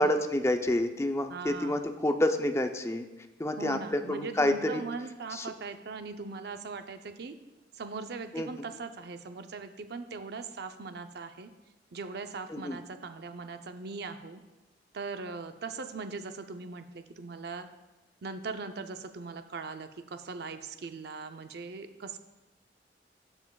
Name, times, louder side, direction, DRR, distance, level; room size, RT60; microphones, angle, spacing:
voice 1, 0.0-3.1 3.4-4.8 5.3-5.5 8.3-8.5 12.5-12.8, left 1 dB, 15° left, 6 dB, 0.5 m, -28 dB
voice 2, 1.3-1.9 3.6-7.3 7.7-11.5 11.9-14.4 14.9-17.7 18.2-22.2, right 4 dB, 65° right, 8 dB, 0.6 m, -40 dB
12.0 x 7.2 x 2.3 m, 1.1 s
head